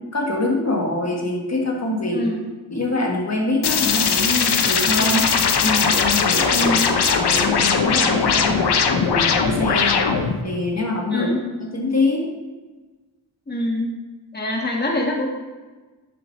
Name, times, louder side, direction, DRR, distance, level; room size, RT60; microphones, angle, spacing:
voice 1, 0.0-2.3 2.7-5.2 5.6-6.7 7.1-10.1 10.4-11.3 11.6-12.3, left 2 dB, 40° left, 0 dB, 1.5 m, -24 dB
sound 1, 3.6-10.4, left 6 dB, 70° left, 0.9 m, -19 dB
voice 2, 6.5-6.9 11.1-11.4 13.5-13.9 14.3-15.3, left 1 dB, 25° left, 0 dB, 1.5 m, -24 dB
9.7 x 6.7 x 3.1 m, 1.3 s
cardioid pair, 65°, 41 cm